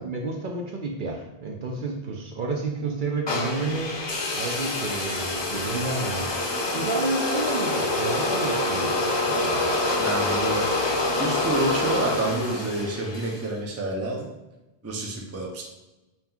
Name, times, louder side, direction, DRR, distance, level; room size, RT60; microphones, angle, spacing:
voice 1, 0.0-4.0 4.3-6.4 6.7-9.8, right 3 dB, 60° right, 1 dB, 0.7 m, -30 dB
sound 1, 3.3-13.5, left 2 dB, 35° left, 0.5 m, -26 dB
voice 2, 10.0-10.9 11.2-14.3 14.8-15.6, right 2 dB, 20° right, 0 dB, 0.4 m, -29 dB
5.3 x 2.9 x 2.3 m, 1.0 s
omnidirectional pair, 1.0 m